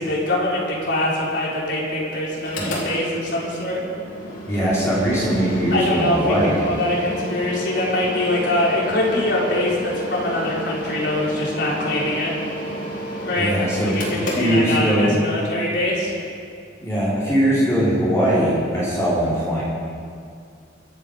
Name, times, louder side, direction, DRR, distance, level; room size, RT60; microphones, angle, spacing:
voice 1, 0.0-3.8 5.7-12.3 13.2-16.1, left 1 dB, 65° left, -5 dB, 4.1 m, -23 dB
Mechanical fan, 2.3-15.2, left 1 dB, 85° left, 3.6 m, -31 dB
voice 2, 2.6-2.9 4.5-6.6 13.4-13.9 14.3-15.1 16.8-19.6, right 1 dB, 15° left, -9 dB, 3.9 m, -20 dB
24.0 x 8.8 x 5.3 m, 2.3 s
head